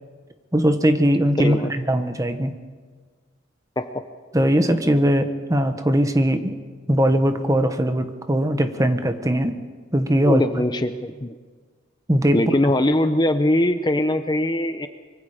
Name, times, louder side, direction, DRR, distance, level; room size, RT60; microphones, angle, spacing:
voice 1, 0.5-1.6 1.9-2.6 4.3-6.5 6.9-9.6 9.9-10.4 12.1-12.4, equal, 15° right, 8 dB, 1.3 m, -20 dB
voice 2, 1.4-1.7 3.8-4.0 10.2-11.3 12.3-14.9, left 1 dB, 20° left, 9 dB, 0.7 m, -21 dB
25.0 x 24.0 x 5.0 m, 1.5 s
head